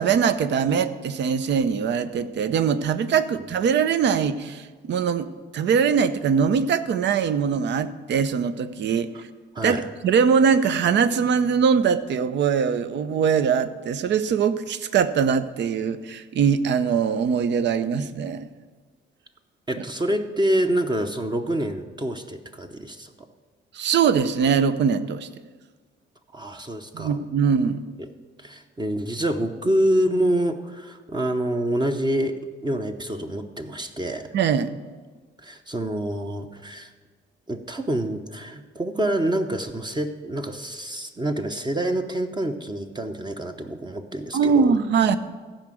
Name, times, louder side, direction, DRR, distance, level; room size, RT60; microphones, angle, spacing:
voice 1, 0.0-9.1 9.6-9.8 10.0-18.5 23.7-25.3 26.9-27.8 34.3-34.7 44.3-45.2, right 6 dB, 65° right, 13 dB, 0.7 m, -22 dB
voice 2, 19.7-23.1 26.3-27.2 28.4-34.3 35.4-36.9 37.5-44.7, right 1 dB, 20° right, 5 dB, 0.8 m, -27 dB
14.5 x 5.1 x 7.6 m, 1.4 s
cardioid pair, 90°, 20 cm